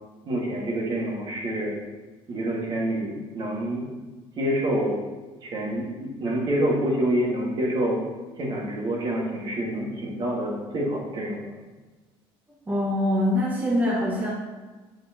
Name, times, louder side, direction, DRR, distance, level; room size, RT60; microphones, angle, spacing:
voice 1, 0.3-1.8 2.3-3.9 4.4-5.0 5.4-8.0 8.4-11.5, right 1 dB, 40° right, -2 dB, 1.9 m, -27 dB
voice 2, 12.7-14.3, left 1 dB, 15° right, -5 dB, 1.6 m, -24 dB
8.0 x 7.3 x 3.0 m, 1.3 s
cardioid pair, 140°, 11 cm